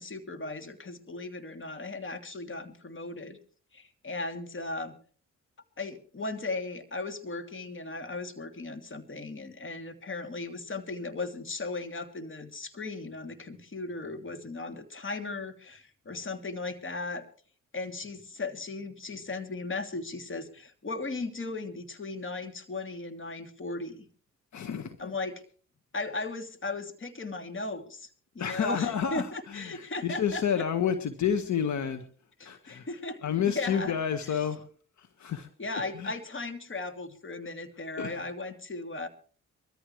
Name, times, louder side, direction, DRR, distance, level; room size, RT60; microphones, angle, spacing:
voice 1, 0.0-3.4 3.7-5.0 5.8-17.2 17.7-24.1 25.0-25.4 25.9-28.1 28.3-30.6 32.4-33.2 33.5-33.9 34.3-34.4 35.6-39.1, left 3 dB, 40° left, 6 dB, 2.9 m, -37 dB
voice 2, 24.5-25.1 28.4-32.1 32.4-32.9 33.2-34.7 35.0-35.5 35.9-36.1 37.9-38.3, left 8 dB, 75° left, 8 dB, 1.6 m, -30 dB
23.5 x 14.5 x 3.2 m, 0.42 s
cardioid pair, 75°, 29 cm